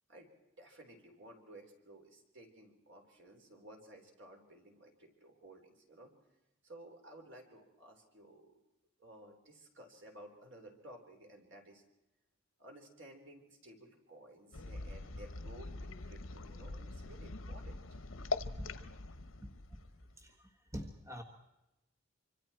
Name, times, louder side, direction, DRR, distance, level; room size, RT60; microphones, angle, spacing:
voice 1, 0.6-6.1 6.6-8.5 9.0-11.8 12.6-18.0, right 1 dB, 65° right, 2 dB, 4.1 m, -55 dB
sound 1, 14.5-20.3, left 3 dB, 80° left, 1.0 m, -43 dB
voice 2, 19.4-19.8 20.2-21.2, equal, 15° right, 4 dB, 1.5 m, -46 dB
25.5 x 25.5 x 4.5 m, 0.95 s
head